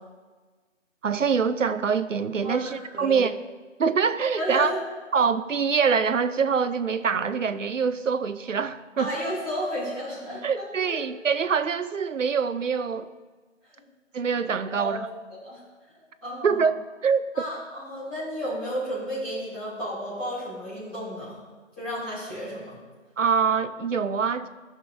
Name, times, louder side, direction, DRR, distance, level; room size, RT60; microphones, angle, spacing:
voice 1, 1.0-3.3 3.8-4.7 5.1-9.1 10.4-13.1 14.1-15.1 16.4-16.7 17.0-17.2 23.2-24.5, right 6 dB, 70° right, 0.7 m, -24 dB
voice 2, 2.4-3.2 4.3-4.8 9.0-10.9 13.7-13.8 14.7-14.9 15.4-15.6 16.2-16.6 17.3-21.4 21.8-22.8, equal, 5° left, 2.7 m, -32 dB
15.5 x 6.5 x 2.6 m
figure-of-eight pair, 175°, 39 cm